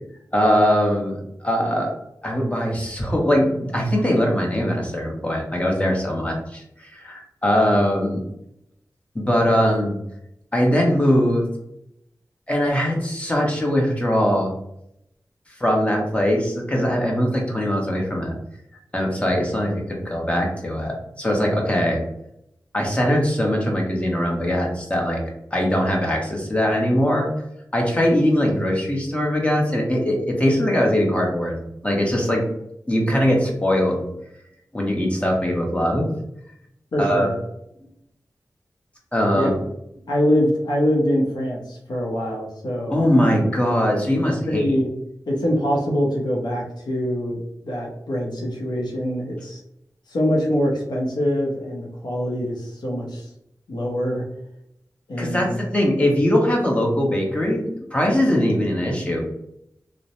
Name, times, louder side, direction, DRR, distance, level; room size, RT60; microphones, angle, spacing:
voice 1, 0.3-1.9 2.2-8.2 9.1-10.0 10.5-11.5 12.5-14.5 15.6-18.3 18.9-22.0 22.7-25.2 25.5-27.3 27.7-32.5 32.9-34.1 34.7-36.1 37.0-37.3 39.1-39.5 42.9-44.6 55.2-59.2, equal, 20° left, -1 dB, 1.0 m, -21 dB
voice 2, 36.9-37.3 39.3-39.5 40.1-43.0 44.5-44.9 45.3-49.6 50.1-53.3 53.7-54.2 55.1-55.6, equal, 80° left, -2 dB, 0.6 m, -24 dB
2.9 x 2.0 x 2.7 m, 0.78 s
cardioid pair, 40°, 7 cm